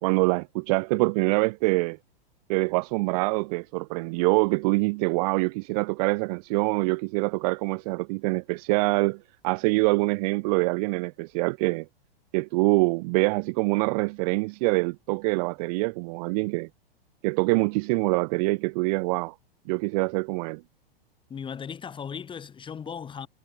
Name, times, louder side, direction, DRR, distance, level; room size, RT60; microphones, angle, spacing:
voice 1, 0.0-2.0 2.5-11.9 12.3-16.7 17.2-19.3 19.7-20.6, right 28 dB, 40° right, 1.0 m, -25 dB
voice 2, 21.3-23.3, left 7 dB, 15° left, 2.5 m, -37 dB
figure-of-eight pair, 105°, 30 cm